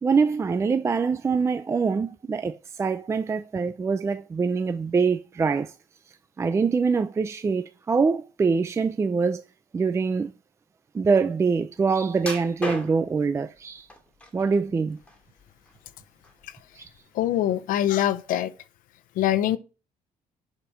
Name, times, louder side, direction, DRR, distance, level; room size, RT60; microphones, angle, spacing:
voice 1, 0.0-5.7 6.4-9.4 9.7-10.3 10.9-13.9 14.3-15.0 16.8-16.9, right 5 dB, 20° right, 0.5 m, -24 dB
sound 1, 12.2-13.2 13.9-14.6 15.0-15.9 16.2-16.4 17.0-17.1, left 1 dB, 10° left, 2.5 m, -35 dB
voice 2, 17.1-18.5 19.2-19.6, left 12 dB, 90° left, 0.9 m, -23 dB
11.5 x 5.1 x 6.3 m
cardioid pair, 165°, 14 cm